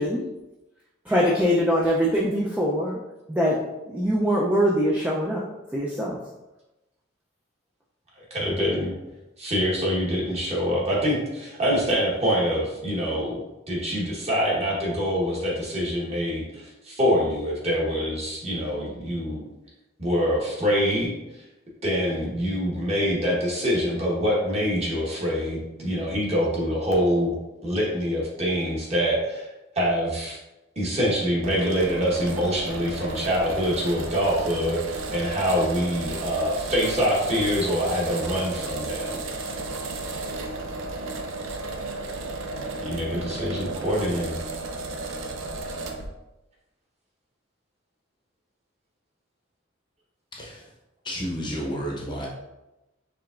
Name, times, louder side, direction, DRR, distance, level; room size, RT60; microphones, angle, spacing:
voice 1, 1.1-3.0 3.3-3.6 3.9-5.4 5.7-6.2, equal, 5° right, -5 dB, 0.4 m, -23 dB
voice 2, 8.3-8.9 9.4-19.4 20.0-21.4 21.8-27.4 27.6-29.5 29.7-30.4 30.8-39.2 42.8-44.3, equal, 30° right, -5 dB, 1.1 m, -25 dB
sound 1, 31.4-46.1, right 2 dB, 75° right, 0.5 m, -33 dB
voice 3, 50.3-50.7 51.0-52.3, equal, 20° left, -3 dB, 0.8 m, -31 dB
4.8 x 3.4 x 2.4 m, 0.99 s
head